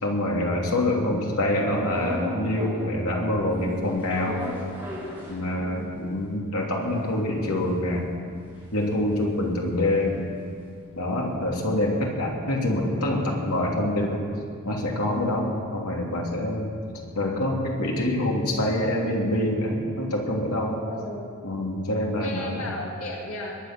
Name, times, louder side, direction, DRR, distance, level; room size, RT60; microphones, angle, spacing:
voice 1, 0.0-4.4 5.3-8.1 8.7-10.2 11.0-14.2 14.6-16.7 17.1-20.8 21.4-22.7, left 1 dB, 85° left, -1 dB, 3.0 m, -26 dB
sound 1, 1.8-3.0 3.4-5.9 6.3-6.4 6.6-11.1 11.4-15.5, equal, 10° right, 3.8 m, -39 dB
voice 2, 5.6-6.0 20.9-21.4 22.2-23.6, left 1 dB, 70° left, -2 dB, 2.2 m, -36 dB
22.0 x 9.8 x 6.2 m, 2.2 s
head